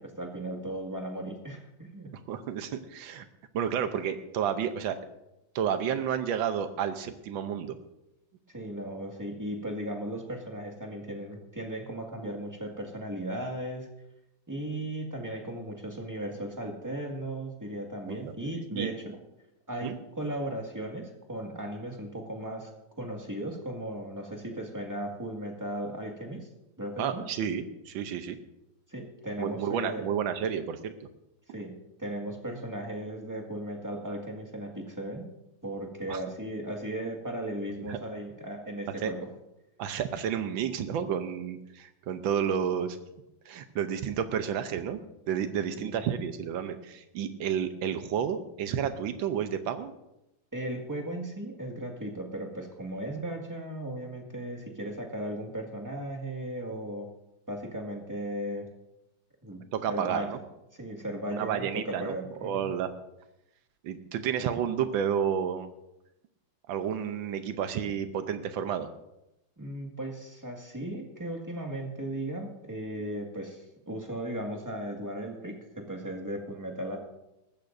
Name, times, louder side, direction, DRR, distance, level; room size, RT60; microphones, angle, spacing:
voice 1, 0.2-2.1 8.5-13.9 14.5-19.2 19.7-22.7 23.0-26.5 26.8-27.2 28.9-30.0 31.5-35.3 35.6-39.2 45.8-46.0 50.5-57.1 57.5-58.7 59.4-60.3 60.7-61.7 62.0-62.7 69.6-77.0, right 1 dB, 10° right, 1 dB, 1.8 m, -36 dB
voice 2, 2.3-3.2 3.5-5.0 5.5-7.8 18.1-18.3 18.7-18.9 19.8-20.0 27.0-28.4 29.4-30.9 36.1-36.2 37.9-38.0 39.0-39.1 39.8-43.0 43.5-45.0 45.3-49.9 59.7-60.4 61.3-62.2 62.4-62.9 63.8-65.7 66.7-68.9, right 8 dB, 90° right, 9 dB, 1.6 m, -31 dB
19.5 x 14.5 x 2.6 m, 0.89 s
omnidirectional pair, 2.1 m